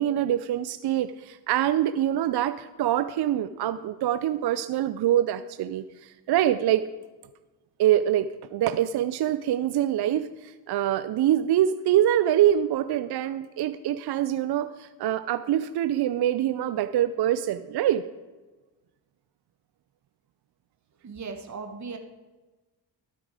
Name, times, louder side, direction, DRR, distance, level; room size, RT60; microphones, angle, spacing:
voice 1, 0.0-6.8 7.8-18.0, right 11 dB, 60° right, 12 dB, 0.6 m, -25 dB
voice 2, 21.0-22.0, right 4 dB, 40° right, 6 dB, 1.3 m, -37 dB
12.5 x 7.7 x 5.0 m, 1.2 s
supercardioid pair, 60°, 45 cm